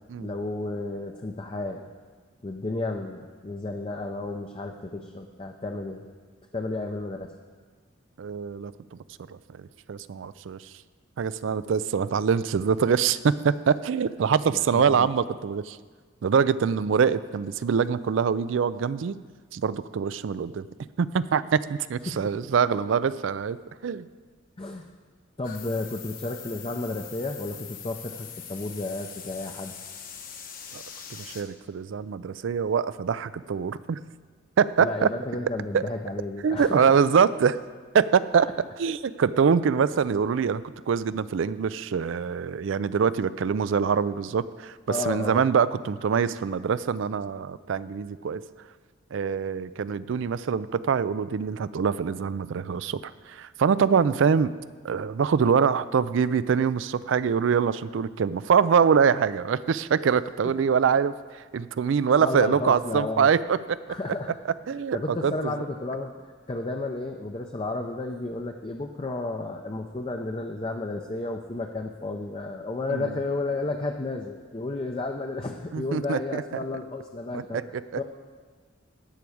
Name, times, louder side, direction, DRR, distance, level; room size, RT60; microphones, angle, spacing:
voice 1, 0.1-1.9 2.4-6.0 6.5-7.3 14.5-15.1 22.1-22.3 24.6-24.9 25.4-29.7 34.8-36.9 38.3-38.4 44.9-45.5 60.4-60.5 62.2-63.3 63.9-64.3 64.9-66.1 66.5-78.0, left 2 dB, 25° left, 3 dB, 0.5 m, -32 dB
voice 2, 8.2-8.7 9.3-9.4 9.9-10.6 11.2-15.8 16.2-19.2 19.5-20.7 21.0-23.6 23.8-24.1 30.7-30.8 31.1-34.0 34.6-35.1 35.7-35.8 36.4-37.6 37.9-38.5 38.8-40.6 40.9-48.4 49.1-53.0 53.3-54.5 54.8-61.1 61.5-63.8 64.7-65.0 65.2-65.5 72.9-73.1 75.7-76.4 77.3-77.8, right 6 dB, 65° right, 16 dB, 0.4 m, -24 dB
sound 1, 25.4-31.4, left 8 dB, 45° left, 1.0 m, -42 dB
13.0 x 4.7 x 8.6 m, 1.5 s
head